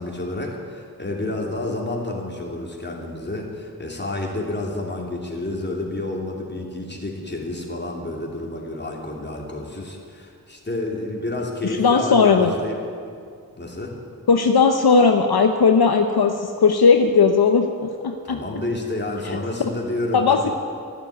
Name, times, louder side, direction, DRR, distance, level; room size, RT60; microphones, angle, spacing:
voice 1, 0.0-12.8 13.5-14.0 18.2-20.5, left 2 dB, 25° left, -1 dB, 3.0 m, -29 dB
voice 2, 11.6-12.5 14.3-18.4 20.1-20.5, left 5 dB, 75° left, 5 dB, 0.9 m, -17 dB
13.0 x 12.0 x 8.6 m, 2.3 s
wide cardioid pair, 80°, 38 cm